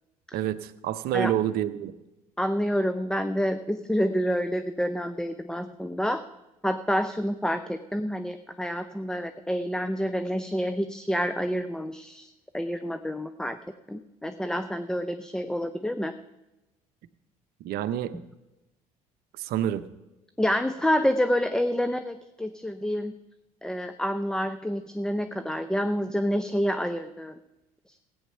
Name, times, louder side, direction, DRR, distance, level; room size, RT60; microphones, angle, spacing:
voice 1, 0.3-1.9 17.6-18.1 19.4-19.8, right 11 dB, 55° right, 13 dB, 0.8 m, -28 dB
voice 2, 2.4-6.2 6.6-13.6 13.9-16.1 20.4-23.1 23.6-27.4 27.9-28.0, equal, 5° left, 10 dB, 0.7 m, -28 dB
16.5 x 8.8 x 5.5 m, 0.99 s
hypercardioid pair, 60°, 19 cm